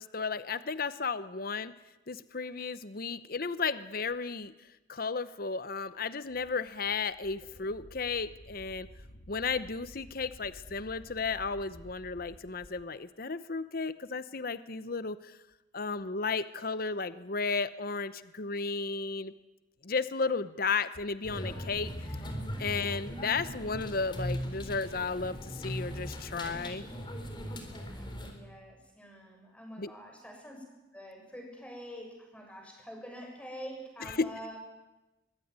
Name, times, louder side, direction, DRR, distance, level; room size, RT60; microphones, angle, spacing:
voice 1, 0.0-1.7 2.1-4.5 4.9-8.9 9.3-15.4 15.7-19.3 19.8-21.9 22.6-26.9 29.8-29.9 34.2-34.3, left 4 dB, 50° left, 14 dB, 0.9 m, -34 dB
Wind, 6.4-12.9, equal, 90° left, 2.9 m, -53 dB
sound 1, 21.2-28.3, equal, 25° left, 3.9 m, -39 dB
voice 2, 27.9-30.6 30.9-34.6, equal, 5° left, 2 dB, 6.6 m, -46 dB
23.0 x 23.0 x 9.7 m, 1.0 s
head